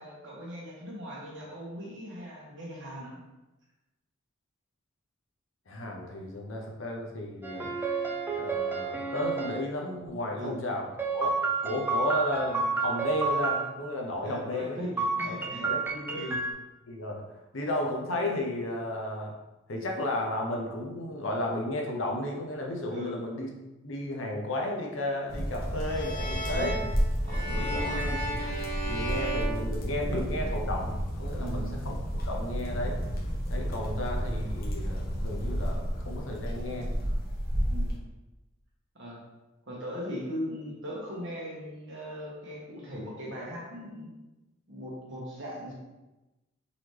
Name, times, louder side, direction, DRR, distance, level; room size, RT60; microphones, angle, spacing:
voice 1, 0.0-3.2 10.3-10.6 14.2-15.7 16.1-16.4 22.9-23.2 26.5-26.8 27.3-28.1 31.4-31.8 37.7-37.9 38.9-39.2 39.7-44.1 44.7-45.7, equal, 65° right, -4 dB, 1.3 m, -39 dB
voice 2, 5.7-7.7 8.4-10.9 11.1-11.3 11.6-14.8 15.2-16.2 16.9-17.2 17.5-19.3 19.7-23.5 23.8-26.8 27.5-28.4 28.9-33.0 33.5-36.9, left 1 dB, 75° left, 0 dB, 0.8 m, -33 dB
sound 1, 7.4-9.6 11.0-13.7 15.0-16.5, right 4 dB, 10° right, 0.4 m, -30 dB
sound 2, 25.3-37.9, equal, 50° left, 0.9 m, -31 dB
sound 3, 25.8-30.4, right 1 dB, 10° left, 1.4 m, -35 dB
4.0 x 2.9 x 3.2 m, 1.0 s
head